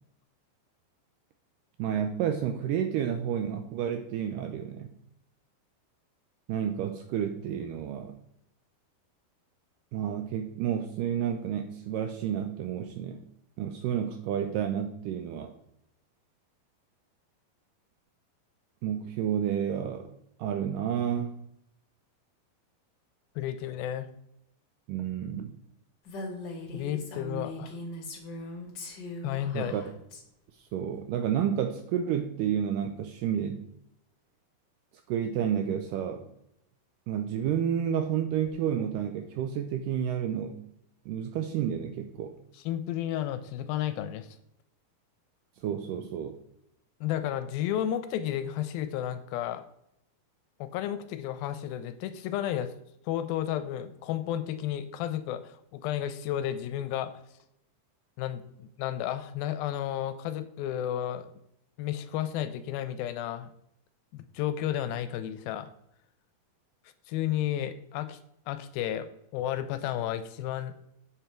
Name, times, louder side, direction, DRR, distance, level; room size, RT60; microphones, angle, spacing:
voice 1, 1.8-4.9 6.5-8.2 9.9-13.2 13.6-15.5 18.8-20.1 20.4-21.4 24.9-25.5 29.5-29.8 30.5-33.7 35.1-36.3 37.1-40.6 41.1-42.4 45.6-46.4, right 9 dB, 85° right, 8 dB, 1.9 m, -30 dB
voice 2, 23.4-24.1 26.7-27.8 29.2-29.7 42.7-44.3 47.0-49.6 50.6-52.7 53.1-57.1 58.2-61.3 61.8-63.5 64.1-65.7 67.1-68.2 68.5-70.7, left 11 dB, 85° left, 11 dB, 2.3 m, -32 dB
Female speech woman speaking, 26.1-30.2, left 1 dB, 60° left, 1.1 m, -40 dB
8.0 x 7.0 x 4.4 m, 0.77 s
omnidirectional pair, 4.4 m